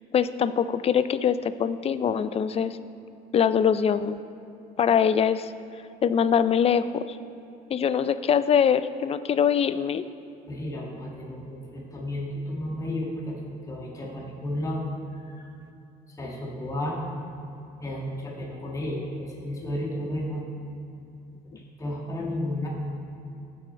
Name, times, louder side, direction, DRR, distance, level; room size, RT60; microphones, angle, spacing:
voice 1, 0.1-2.8 3.3-4.2 4.8-5.5 6.0-7.2 7.7-10.0, left 7 dB, 35° left, 14 dB, 0.4 m, -23 dB
voice 2, 10.5-13.4 13.7-14.8 15.1-15.5 16.2-17.0 17.8-20.4 21.6-22.7, left 1 dB, 20° left, -3 dB, 1.9 m, -32 dB
15.0 x 6.4 x 4.3 m, 2.8 s
cardioid pair, 110°, 17 cm